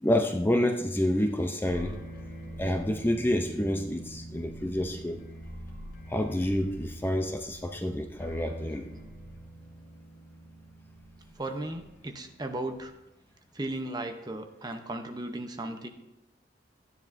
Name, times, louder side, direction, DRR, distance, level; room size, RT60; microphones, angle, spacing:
voice 1, 0.0-2.0 2.6-5.2 6.1-8.9, left 1 dB, 10° left, 4 dB, 0.5 m, -28 dB
sound 1, 1.6-13.0, equal, 55° left, 2.4 m, -44 dB
voice 2, 11.4-12.9 13.5-15.9, right 1 dB, 20° right, 5 dB, 0.7 m, -36 dB
13.0 x 9.7 x 2.6 m, 0.89 s
head